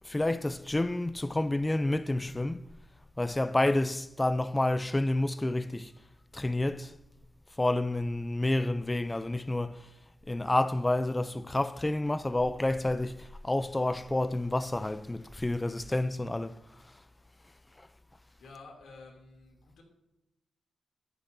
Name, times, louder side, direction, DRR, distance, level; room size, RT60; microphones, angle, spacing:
voice 1, 0.0-2.6 3.2-5.9 6.3-6.9 7.6-9.9 10.3-16.6, left 1 dB, 10° left, 0.3 m, -29 dB
voice 2, 18.4-19.8, left 3 dB, 75° left, 2.6 m, -51 dB
14.0 x 10.5 x 2.6 m
wide cardioid pair, 145°, 0 cm